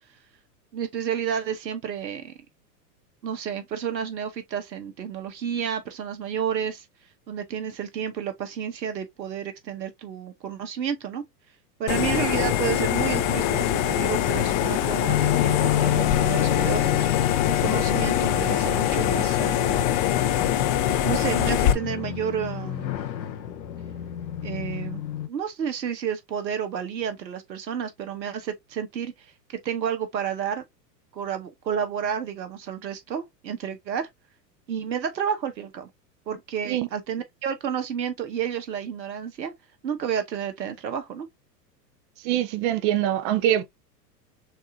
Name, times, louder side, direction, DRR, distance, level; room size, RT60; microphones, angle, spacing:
voice 1, 0.7-2.3 3.2-6.9 7.3-11.2 11.8-17.2 17.6-19.9 21.0-22.9 24.4-25.0 25.3-30.6 31.1-34.1 34.7-35.9 36.3-39.5 39.8-41.3, right 8 dB, 90° right, 1.1 m, -31 dB
sound 1, 11.9-21.7, left 10 dB, 30° left, 0.4 m, -23 dB
sound 2, 15.1-25.3, left 12 dB, 85° left, 0.9 m, -30 dB
voice 2, 42.2-43.6, right 12 dB, 30° right, 0.4 m, -23 dB
6.4 x 2.5 x 2.6 m
hypercardioid pair, 115°, 50 cm